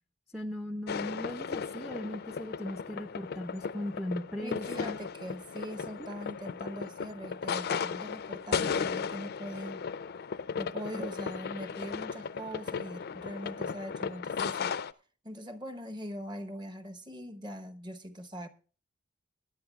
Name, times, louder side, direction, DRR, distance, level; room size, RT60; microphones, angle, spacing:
voice 1, 0.3-5.0, left 1 dB, ahead, 0.4 m, -38 dB
sound 1, 0.9-14.9, left 6 dB, 55° left, 0.4 m, -36 dB
voice 2, 4.4-9.8 10.6-14.8 15.2-18.5, equal, 25° right, 0.9 m, -42 dB
22.0 x 10.0 x 2.3 m
head